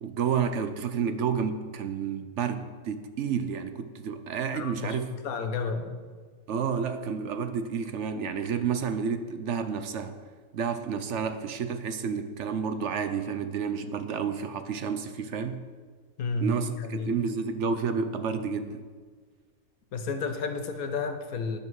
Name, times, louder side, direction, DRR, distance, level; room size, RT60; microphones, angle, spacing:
voice 1, 0.0-5.1 6.5-10.2 10.5-15.6 16.4-18.8, right 6 dB, 60° right, 9 dB, 0.9 m, -30 dB
voice 2, 4.5-5.9 16.2-16.5 16.8-17.1 19.9-21.6, left 4 dB, 80° left, 7 dB, 1.5 m, -32 dB
12.0 x 9.9 x 4.8 m, 1.5 s
omnidirectional pair, 1.5 m